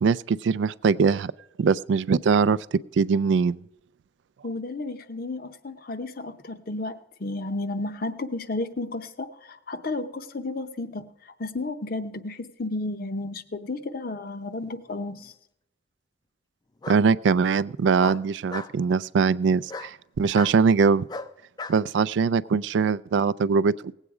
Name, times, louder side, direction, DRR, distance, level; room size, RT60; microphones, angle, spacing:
voice 1, 0.0-1.3 1.6-2.6 3.0-3.6 16.9-21.1 21.7-23.7, right 5 dB, 80° right, 18 dB, 0.3 m, -22 dB
voice 2, 4.4-11.1 11.4-15.3, left 2 dB, 55° left, 10 dB, 0.8 m, -32 dB
Bark, 14.7-15.3 16.8-17.0 18.0-18.7 19.7-19.9 20.3-20.6 21.1-21.8, left 4 dB, 25° left, 0.4 m, -37 dB
18.0 x 8.2 x 4.8 m, 0.84 s
head